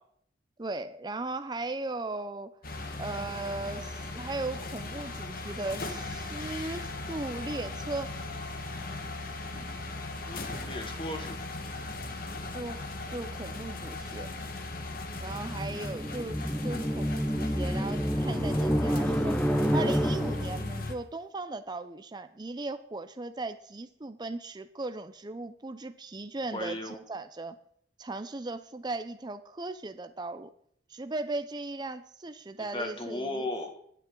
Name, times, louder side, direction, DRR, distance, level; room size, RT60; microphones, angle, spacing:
voice 1, 0.6-2.5 3.0-8.1 9.5-9.7 12.5-14.3 15.2-19.4 19.7-27.6 28.0-30.5 30.9-33.5, right 2 dB, 25° right, 10 dB, 0.5 m, -37 dB
sound 1, 2.6-20.9, left 2 dB, 55° left, 1.5 m, -38 dB
voice 2, 10.3-11.4 26.5-27.0 32.6-33.7, left 1 dB, 30° left, 5 dB, 1.8 m, -36 dB
sound 2, 15.2-20.7, equal, 10° left, 0.7 m, -29 dB
23.5 x 8.4 x 3.8 m, 0.66 s
head